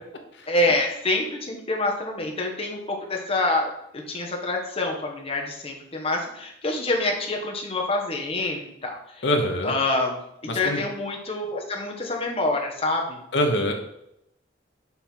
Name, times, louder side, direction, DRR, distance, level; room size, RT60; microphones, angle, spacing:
voice 1, 0.5-9.3 9.6-10.2 10.5-13.2, left 2 dB, 30° left, 0 dB, 1.1 m, -26 dB
voice 2, 9.2-9.7 10.5-10.8 13.3-13.7, left 1 dB, 70° left, 3 dB, 0.9 m, -23 dB
5.6 x 4.4 x 4.4 m, 0.80 s
head